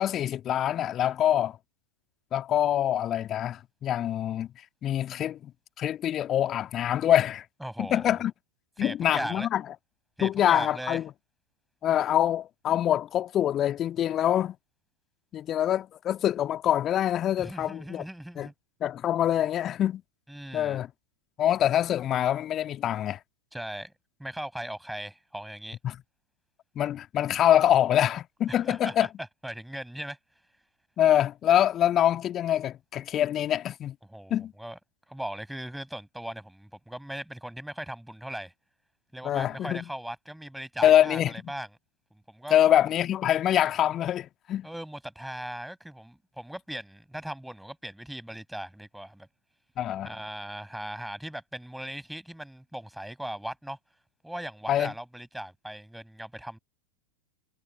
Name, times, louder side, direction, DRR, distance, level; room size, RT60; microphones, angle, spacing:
voice 1, 0.0-1.6 2.3-4.5 4.8-5.5 5.8-7.4 7.8-8.3 8.8-9.6 10.2-11.1 11.8-14.6 15.3-18.0 18.4-18.5 18.8-20.0 20.5-20.9 21.4-23.2 25.8-26.0 26.8-29.1 31.0-34.0 34.3-34.5 39.2-39.9 40.8-41.5 42.5-44.7 49.8-50.1 54.7-54.9, left 11 dB, 30° left, 2.0 m, -25 dB
voice 2, 7.6-8.2 8.8-9.5 10.2-11.0 17.4-18.5 20.3-20.8 23.5-23.9 24.2-25.8 28.5-29.1 29.4-30.2 34.1-34.8 35.1-38.5 39.1-41.7 42.1-42.6 44.6-49.3 50.0-53.8 54.2-56.6, right 1 dB, ahead, 7.6 m, -38 dB
figure-of-eight pair, 90°, 0 cm